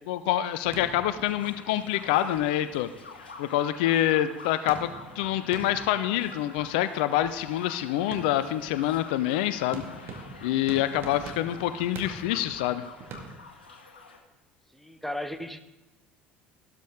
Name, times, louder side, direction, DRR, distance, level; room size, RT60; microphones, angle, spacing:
voice 1, 0.1-2.9 3.4-9.8 10.4-12.8, left 12 dB, 65° left, 0.6 m, -26 dB
sound 1, 0.6-3.7 4.1-4.2 4.7-13.4, right 4 dB, 50° right, 1.9 m, -45 dB
sound 2, 1.2-14.2, left 4 dB, 80° left, 1.5 m, -47 dB
voice 2, 14.7-15.6, left 1 dB, 5° left, 1.0 m, -35 dB
13.5 x 12.5 x 3.7 m
figure-of-eight pair, 60°, 5 cm